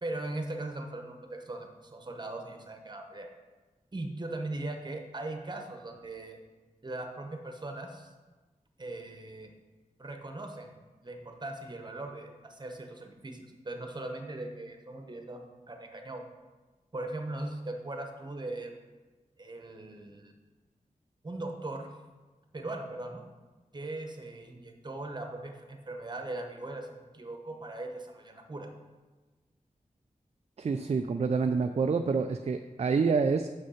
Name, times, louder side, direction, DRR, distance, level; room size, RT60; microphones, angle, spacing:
voice 1, 0.0-3.3 3.9-6.4 6.8-8.1 8.8-9.5 10.0-16.2 16.9-18.7 19.4-20.3 21.2-21.9 22.5-23.2 23.7-28.7, right 2 dB, 30° right, 4 dB, 1.0 m, -39 dB
voice 2, 30.6-33.5, right 5 dB, 50° right, 7 dB, 0.4 m, -27 dB
6.4 x 5.4 x 5.6 m, 1.3 s
wide cardioid pair, 90°, 14 cm